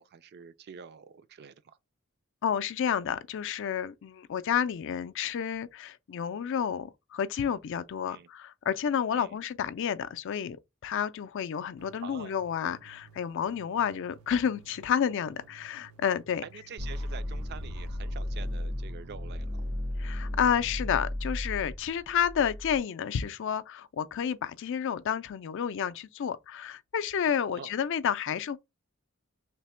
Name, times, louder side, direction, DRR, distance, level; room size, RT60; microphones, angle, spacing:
voice 1, 0.0-1.8 8.1-8.3 9.1-9.4 12.0-12.3 16.4-19.6 27.5-27.7, right 6 dB, 50° right, 0.4 m, -46 dB
voice 2, 2.4-10.6 10.8-16.4 20.0-28.6, left 8 dB, 60° left, 0.4 m, -30 dB
sound 1, 11.8-18.6, right 5 dB, 90° right, 0.6 m, -57 dB
sound 2, 16.8-22.8, left 1 dB, 75° right, 1.0 m, -35 dB
3.3 x 2.1 x 4.2 m
head